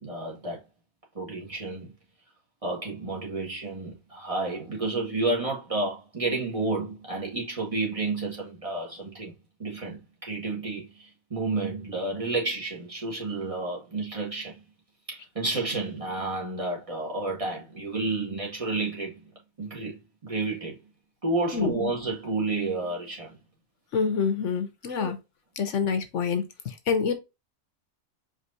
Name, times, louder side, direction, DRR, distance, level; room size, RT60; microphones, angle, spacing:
voice 1, 0.0-0.6 1.1-1.9 2.6-9.3 9.6-14.6 15.1-19.2 19.6-20.8 21.2-23.4 25.0-25.1, right 3 dB, 25° right, 1.7 m, -31 dB
voice 2, 21.5-21.9 23.9-25.2 25.6-27.1, left 6 dB, 65° left, 1.1 m, -27 dB
4.7 x 3.3 x 2.6 m
omnidirectional pair, 1.4 m